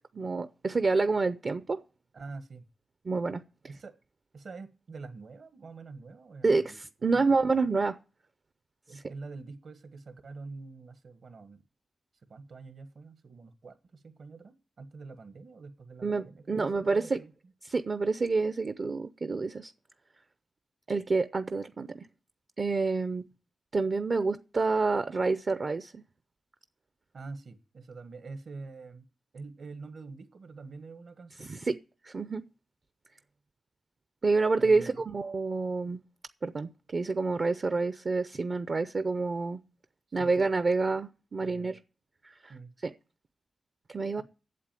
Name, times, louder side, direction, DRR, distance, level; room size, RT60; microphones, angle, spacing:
voice 1, 0.1-1.8 3.1-3.4 6.4-8.0 8.9-9.0 16.0-17.2 17.6-19.7 20.9-22.1 22.6-23.3 23.7-26.0 31.4-31.8 32.0-32.4 34.2-36.0 36.4-39.6 40.1-41.8 42.2-42.5 42.8-42.9 43.9-44.2, right 3 dB, 50° right, 0.6 m, -28 dB
voice 2, 2.1-2.7 3.6-3.9 4.3-7.3 8.9-11.6 12.3-17.3 27.1-29.0 29.3-31.5 34.6-35.0 40.2-40.3 41.4-41.7 42.5-42.7, right 4 dB, 70° right, 1.5 m, -46 dB
8.5 x 7.5 x 9.0 m
cardioid pair, 80°, 0 cm